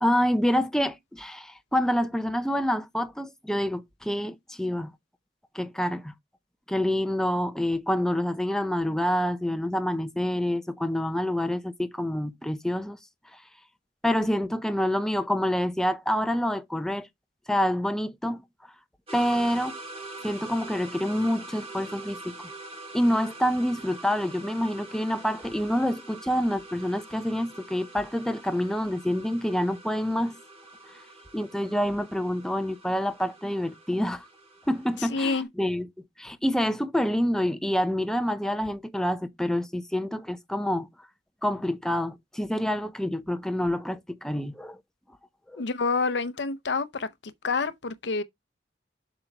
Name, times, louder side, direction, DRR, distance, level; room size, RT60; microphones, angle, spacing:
voice 1, 0.0-4.9 5.5-6.1 6.7-13.0 14.0-17.1 17.5-18.4 19.1-19.7 20.2-22.3 22.9-30.4 31.3-34.3 34.7-35.9 36.2-40.9 41.4-44.8 45.5-45.6, equal, 5° left, 0.6 m, -27 dB
sound 1, 19.1-35.4, right 2 dB, 35° right, 3.1 m, -44 dB
voice 2, 35.1-35.5 45.6-48.2, left 4 dB, 70° left, 0.8 m, -28 dB
7.6 x 6.1 x 3.3 m
head